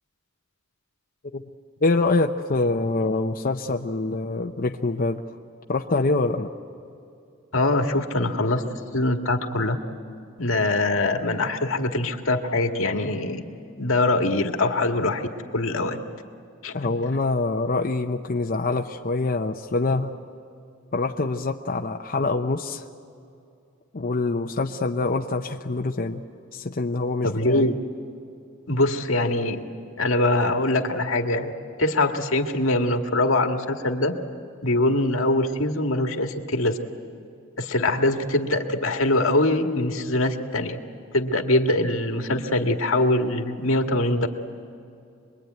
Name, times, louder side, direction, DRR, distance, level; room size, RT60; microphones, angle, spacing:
voice 1, 1.8-5.4 5.7-6.5 16.7-20.1 20.9-22.9 23.9-26.2 26.5-27.6, left 3 dB, 45° left, 3 dB, 0.8 m, -25 dB
voice 2, 7.5-8.6 8.9-9.8 10.4-13.4 13.8-15.3 15.5-16.0 16.6-16.8 27.2-27.8 28.7-29.6 30.0-31.5 31.8-34.1 34.6-36.8 37.6-40.8 41.1-44.3, left 2 dB, 85° left, 4 dB, 1.8 m, -23 dB
26.0 x 21.5 x 9.3 m, 2.5 s
head